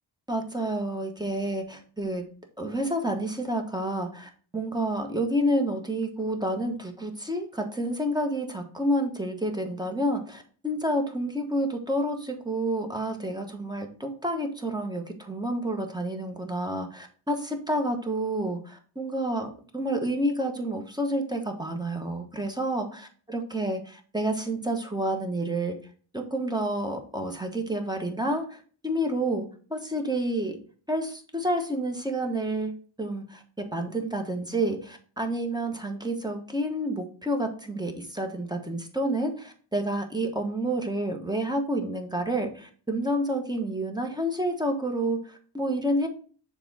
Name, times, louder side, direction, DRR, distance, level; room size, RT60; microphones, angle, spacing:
voice 1, 0.3-2.2 2.6-25.8 26.1-28.6 28.8-30.6 30.9-32.7 33.0-46.1, right 1 dB, 10° right, 4 dB, 1.0 m, -29 dB
6.7 x 3.6 x 4.0 m, 0.43 s
wide cardioid pair, 85°, 50 cm